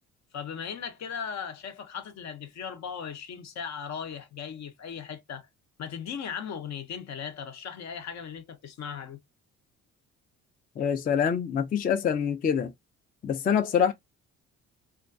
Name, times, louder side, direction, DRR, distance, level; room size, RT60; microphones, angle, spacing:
voice 1, 0.3-5.5 5.8-9.2, left 7 dB, 65° left, 0.7 m, -37 dB
voice 2, 10.8-12.7 13.2-13.9, left 7 dB, 30° left, 0.3 m, -25 dB
2.3 x 2.1 x 2.4 m
cardioid pair, 90°, 30 cm